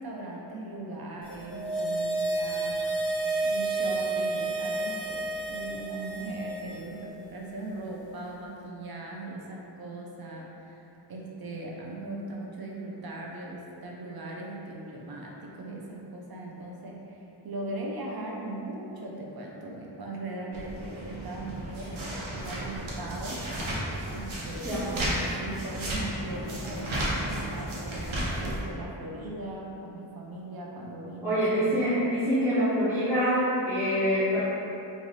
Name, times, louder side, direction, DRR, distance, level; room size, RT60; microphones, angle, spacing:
voice 1, 0.0-2.8 3.4-10.8 11.1-23.4 24.1-32.0, right 2 dB, 50° right, -2 dB, 0.7 m, -39 dB
sound 1, 1.3-6.8 7.1-7.2, right 2 dB, 40° left, 0.7 m, -30 dB
sound 2, 20.5-28.6, right 1 dB, 85° right, 0.9 m, -33 dB
voice 2, 31.2-34.4, equal, 5° right, -12 dB, 0.8 m, -25 dB
3.2 x 2.6 x 3.9 m, 2.9 s
wide cardioid pair, 70°, 46 cm